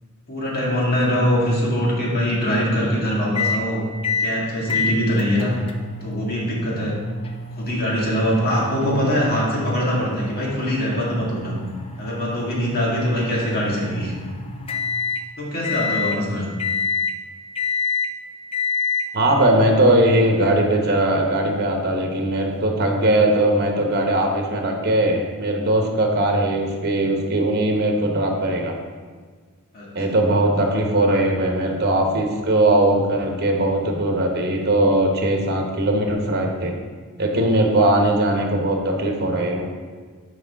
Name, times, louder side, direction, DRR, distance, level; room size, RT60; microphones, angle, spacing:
voice 1, 0.3-3.8 4.2-5.5 6.0-6.9 7.5-11.6 12.0-14.1 15.4-16.4 29.7-29.9, equal, 45° left, -5 dB, 2.0 m, -22 dB
sound 1, 3.3-3.6 4.0-4.3 4.7-15.2 15.6-16.2 16.6-17.2 17.6-18.1 18.5-19.1, left 5 dB, 25° left, 0.5 m, -28 dB
voice 2, 19.1-28.7 29.9-36.7 37.2-39.6, right 1 dB, 50° right, 2 dB, 1.1 m, -20 dB
10.0 x 5.0 x 3.6 m, 1.5 s
head